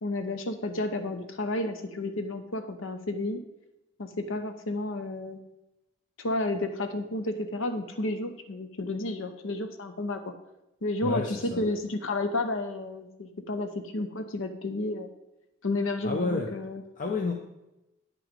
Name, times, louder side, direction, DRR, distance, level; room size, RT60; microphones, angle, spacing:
voice 1, 0.0-3.4 4.0-5.4 6.2-10.3 10.8-15.1 15.6-16.8, left 2 dB, 80° left, 8 dB, 0.7 m, -31 dB
voice 2, 11.0-11.7 16.0-16.5 17.0-17.3, left 3 dB, 40° left, 3 dB, 0.6 m, -30 dB
9.3 x 6.1 x 5.2 m, 0.92 s
head